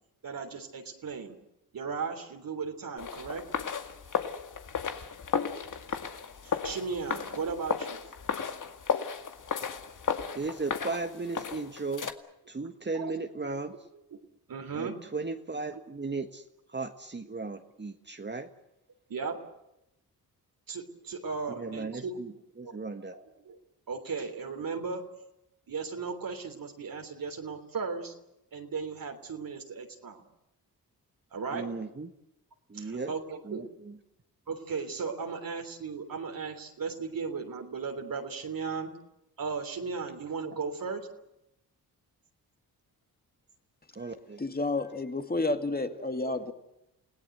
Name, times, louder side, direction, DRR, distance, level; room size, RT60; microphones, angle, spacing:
voice 1, 0.2-1.4 1.7-3.5 6.4-8.0 12.9-13.2 13.9-14.2 14.5-15.0 19.1-19.4 20.7-22.2 22.6-22.8 23.1-23.6 23.9-25.0 25.7-28.2 28.5-30.2 31.3-31.7 32.7-33.6 34.5-38.9 39.4-41.0 46.2-46.5, right 5 dB, 60° right, 3.4 m, -36 dB
sound 1, 3.0-12.1, left 6 dB, 55° left, 2.1 m, -34 dB
voice 2, 10.3-12.1 12.5-13.7 14.7-18.5 21.5-23.1 31.5-32.1 32.7-33.1 33.4-34.0 43.9-44.4, right 3 dB, 30° right, 1.7 m, -36 dB
voice 3, 44.4-46.5, left 2 dB, 25° left, 2.5 m, -30 dB
29.0 x 17.0 x 8.0 m
cardioid pair, 70°, 38 cm